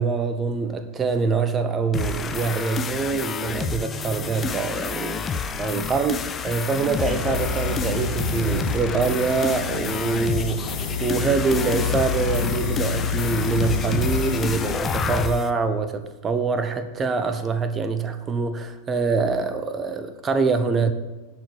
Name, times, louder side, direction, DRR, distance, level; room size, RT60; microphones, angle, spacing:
voice 1, 0.0-20.9, right 4 dB, 20° right, 0.9 m, -25 dB
sound 1, 1.9-15.5, left 5 dB, 20° left, 0.6 m, -29 dB
sound 2, 7.0-14.8, left 5 dB, 55° left, 1.2 m, -29 dB
10.5 x 5.1 x 7.6 m
figure-of-eight pair, 90°, 0 cm